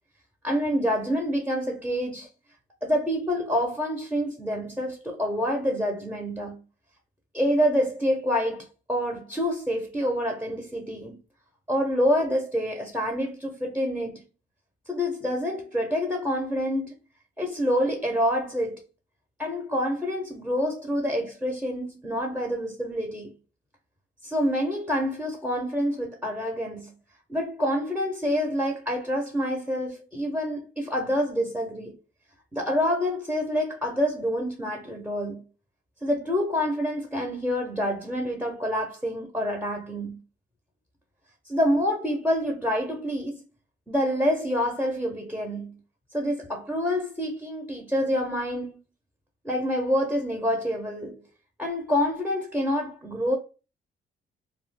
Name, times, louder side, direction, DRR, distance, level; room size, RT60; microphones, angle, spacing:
voice 1, 0.4-2.3 2.8-6.6 7.3-11.2 11.7-14.2 14.9-16.9 17.4-18.8 19.4-23.3 24.2-27.0 27.3-32.0 32.5-35.5 36.0-40.2 41.4-43.4 43.9-45.8 46.1-48.8 49.4-51.2 51.6-53.4, equal, 5° right, 0.6 m, -27 dB
2.2 x 2.1 x 3.5 m
cardioid pair, 90°, 20 cm